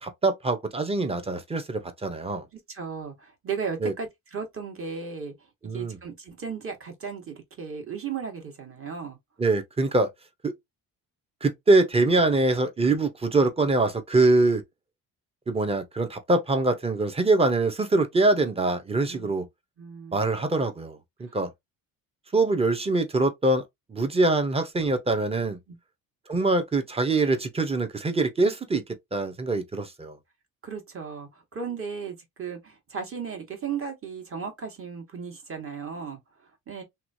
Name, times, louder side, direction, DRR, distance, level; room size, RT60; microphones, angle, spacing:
voice 1, 0.0-2.5 3.8-3.9 5.6-6.0 9.4-10.1 10.4-10.5 11.4-14.6 15.5-19.4 20.1-21.5 22.3-23.6 23.9-25.6 26.3-28.8 29.1-30.2, right 2 dB, 15° right, 0.7 m, -24 dB
voice 2, 2.5-5.3 5.7-9.2 19.1-19.3 19.8-20.2 21.3-21.4 25.7-25.8 30.6-36.8, right 6 dB, 40° right, 1.3 m, -36 dB
2.9 x 2.3 x 2.6 m
cardioid pair, 95°, 36 cm